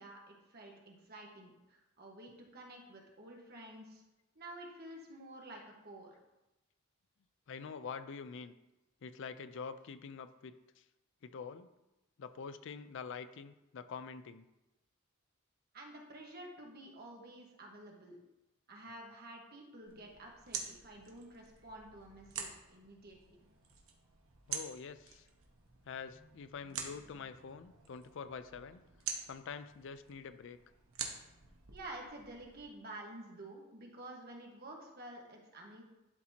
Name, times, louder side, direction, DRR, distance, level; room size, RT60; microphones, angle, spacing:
voice 1, 0.0-4.0 4.3-6.1 15.7-18.2 18.7-23.4 31.7-35.8, right 1 dB, 45° right, 0 dB, 1.4 m, -50 dB
voice 2, 7.5-8.5 9.0-10.8 11.2-11.7 12.2-14.4 24.5-25.3 25.9-28.8 29.3-30.6, left 5 dB, 60° left, 13 dB, 0.4 m, -46 dB
sound 1, 19.9-32.6, right 6 dB, 70° right, 1.1 m, -47 dB
11.5 x 4.2 x 2.9 m, 0.99 s
head